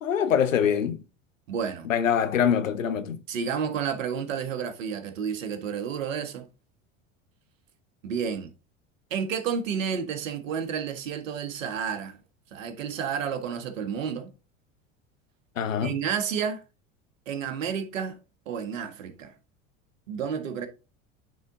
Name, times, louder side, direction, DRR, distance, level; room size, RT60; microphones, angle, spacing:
voice 1, 0.0-1.0 1.8-3.2 15.6-16.0, left 8 dB, 90° left, 0.9 m, -24 dB
voice 2, 1.5-1.9 3.3-6.4 8.0-8.5 9.1-12.2 12.5-14.3 15.8-16.6 17.3-18.2 18.5-19.3 20.1-20.7, right 7 dB, 80° right, 1.3 m, -31 dB
9.1 x 4.0 x 3.7 m
hypercardioid pair, 80°, 38 cm